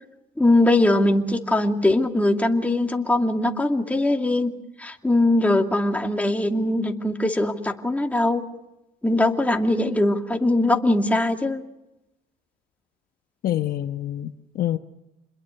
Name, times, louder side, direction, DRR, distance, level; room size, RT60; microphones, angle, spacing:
voice 1, 0.4-4.5 4.8-8.4 9.0-11.6, left 1 dB, 10° left, 2.5 m, -21 dB
voice 2, 13.4-14.8, left 12 dB, 60° left, 1.1 m, -26 dB
28.5 x 21.5 x 6.6 m
cardioid pair, 110°, 17 cm